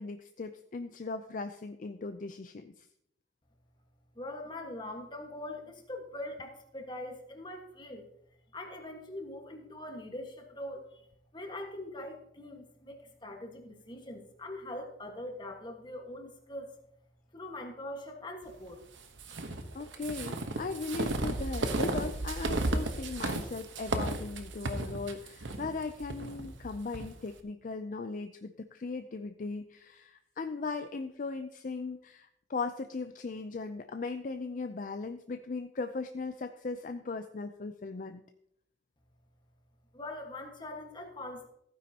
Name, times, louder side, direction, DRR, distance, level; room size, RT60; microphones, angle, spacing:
voice 1, 0.0-2.9 19.3-38.2, left 4 dB, 45° left, 8 dB, 0.4 m, -38 dB
voice 2, 4.1-8.1 8.5-11.0 11.3-16.7 17.3-18.8 39.9-41.5, left 1 dB, 25° left, 2 dB, 1.4 m, -42 dB
sound 1, 19.2-27.1, right 2 dB, 80° right, 1.0 m, -34 dB
15.0 x 9.4 x 2.8 m, 0.75 s
head